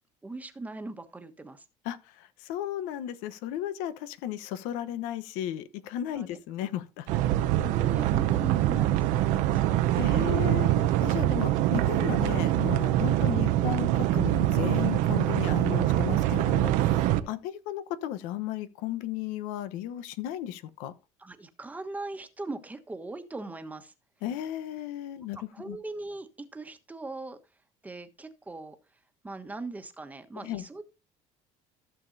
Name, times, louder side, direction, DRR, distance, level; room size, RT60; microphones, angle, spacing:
voice 1, 0.2-1.6 6.2-6.3 7.1-9.8 16.9-17.3 21.2-23.9 25.5-27.4 27.8-28.7 29.2-30.8, right 2 dB, 10° right, 1.2 m, -40 dB
voice 2, 1.8-7.1 10.0-20.9 24.2-25.8 30.4-30.6, left 11 dB, 90° left, 1.0 m, -35 dB
sound 1, 7.1-17.2, right 13 dB, 80° right, 0.8 m, -24 dB
14.5 x 7.1 x 2.7 m
cardioid pair, 125°, 13 cm